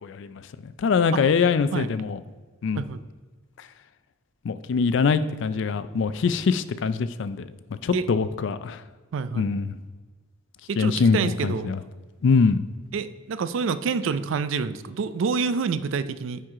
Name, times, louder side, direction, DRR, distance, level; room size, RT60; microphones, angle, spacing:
voice 1, 0.0-2.2 2.6-2.8 3.6-3.7 4.4-7.5 7.8-8.8 9.4-9.8 10.8-11.8 12.2-12.6, left 5 dB, 65° left, 13 dB, 0.4 m, -23 dB
voice 2, 9.1-9.5 10.7-11.7 12.9-16.4, right 5 dB, 70° right, 13 dB, 0.4 m, -27 dB
9.4 x 4.5 x 3.7 m, 1.4 s
head